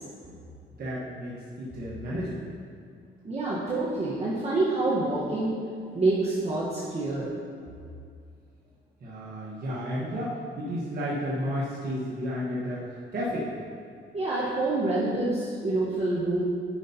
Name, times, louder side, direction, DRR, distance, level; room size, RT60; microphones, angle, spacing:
voice 1, 0.8-2.5 9.0-13.5, equal, 50° right, -7 dB, 1.3 m, -32 dB
voice 2, 3.2-5.6 5.9-7.3 14.1-16.4, right 2 dB, 30° right, -7 dB, 1.2 m, -27 dB
10.5 x 5.5 x 2.8 m, 2.3 s
cardioid pair, 90°, 20 cm